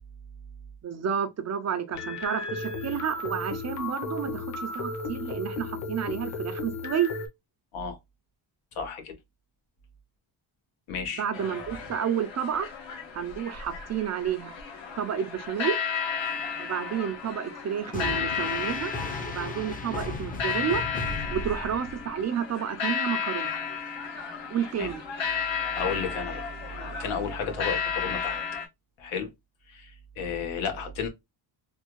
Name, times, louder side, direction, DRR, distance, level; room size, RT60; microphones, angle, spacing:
voice 1, 0.8-7.1 11.2-12.7 13.1-14.6 15.0-15.7 16.6-20.8 21.3-23.6 24.5-25.0, right 8 dB, 35° right, 0.4 m, -30 dB
Spooky Radar, 1.9-7.3, left 3 dB, 35° left, 0.9 m, -34 dB
voice 2, 8.7-9.1 10.9-11.2 24.8-24.9 25.7-28.4 29.0-29.3 29.7-31.1, left 5 dB, 90° left, 1.3 m, -33 dB
sound 1, 11.3-28.7, left 6 dB, 65° left, 1.2 m, -33 dB
sound 2, 17.9-22.2, left 3 dB, 20° left, 0.5 m, -36 dB
3.5 x 2.4 x 3.0 m
cardioid pair, 155°, 47 cm